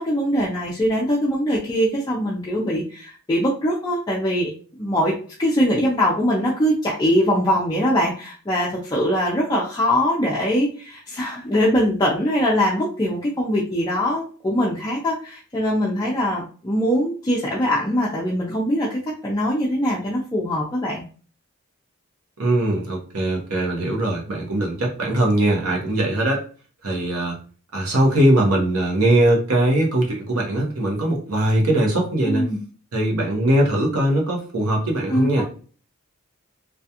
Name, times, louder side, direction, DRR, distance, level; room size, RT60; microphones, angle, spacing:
voice 1, 0.0-5.1 5.4-21.0 32.2-32.6 35.1-35.4, equal, 15° left, -5 dB, 0.3 m, -22 dB
voice 2, 22.4-26.4 26.8-27.4 27.7-32.5 32.9-35.4, right 1 dB, 80° right, -1 dB, 0.8 m, -20 dB
2.3 x 2.3 x 2.7 m, 0.40 s
head